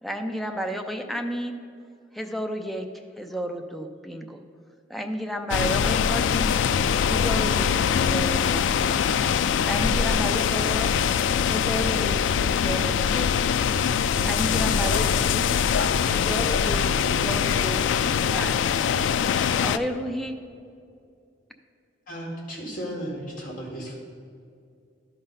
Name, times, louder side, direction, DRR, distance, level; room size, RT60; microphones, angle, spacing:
voice 1, 0.0-1.6 2.1-2.9 3.2-4.4 4.9-6.5 7.1-9.1 9.6-11.0 11.5-12.2 12.5-13.7 14.2-15.5 16.1-17.8 18.3-18.6 19.6-20.4, equal, ahead, 4 dB, 0.5 m, -32 dB
sound 1, 5.5-19.8, left 7 dB, 75° left, 0.3 m, -23 dB
voice 2, 15.6-16.3 17.0-17.3 17.8-18.4, right 3 dB, 80° right, 1 dB, 0.6 m, -39 dB
voice 3, 22.1-23.9, equal, 45° left, -3 dB, 2.0 m, -34 dB
12.0 x 4.0 x 5.3 m, 2.3 s
head